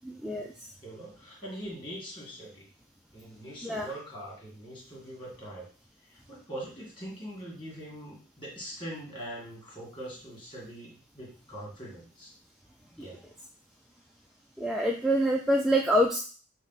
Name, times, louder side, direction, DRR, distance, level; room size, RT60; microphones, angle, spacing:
voice 1, 0.0-0.5 3.6-3.9 13.0-13.1 14.6-16.2, equal, ahead, 0 dB, 0.3 m, -26 dB
voice 2, 0.8-2.7 3.1-5.7 6.1-12.3 12.9-13.2, right 1 dB, 25° left, -4 dB, 2.0 m, -42 dB
5.7 x 2.2 x 4.0 m, 0.40 s
head